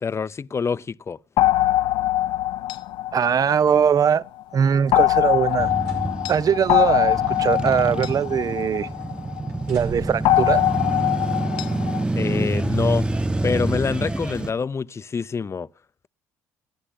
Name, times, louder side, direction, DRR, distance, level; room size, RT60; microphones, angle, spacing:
voice 1, 0.0-1.2 12.2-13.1 13.4-15.7, left 5 dB, 35° left, 0.7 m, -26 dB
sound 1, 1.4-4.1 4.9-9.5 10.2-12.0, left 14 dB, 70° left, 0.7 m, -22 dB
voice 2, 3.1-4.2 4.5-5.7 6.3-8.9 9.7-10.6, right 7 dB, 45° right, 0.9 m, -21 dB
sound 2, 5.4-6.1 6.5-6.7 7.4-8.4 8.7-9.1 9.5-10.4 11.3-11.4, right 3 dB, 85° right, 5.3 m, -44 dB
Male speech man speaking / Motorcycle / Idling, 5.6-14.5, right 2 dB, 10° right, 1.3 m, -27 dB
28.5 x 11.0 x 3.8 m
hypercardioid pair, 55°, 8 cm